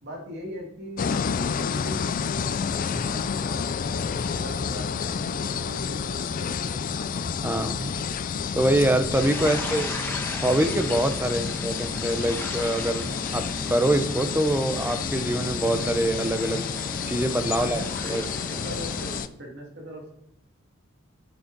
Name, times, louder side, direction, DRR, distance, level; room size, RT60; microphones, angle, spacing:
voice 1, 0.0-7.1 9.4-9.6 11.3-11.5 17.5-20.1, equal, 55° right, -1 dB, 2.1 m, -40 dB
sound 1, 1.0-19.3, left 6 dB, 40° left, 0.4 m, -30 dB
voice 2, 7.4-8.0 8.6-9.9 10.4-13.1 13.3-16.6 17.1-17.8 18.1-18.2, right 1 dB, 10° right, 9 dB, 0.6 m, -24 dB
sound 2, 9.1-19.2, left 1 dB, 10° left, 1.1 m, -36 dB
9.7 x 6.8 x 4.0 m, 0.76 s
head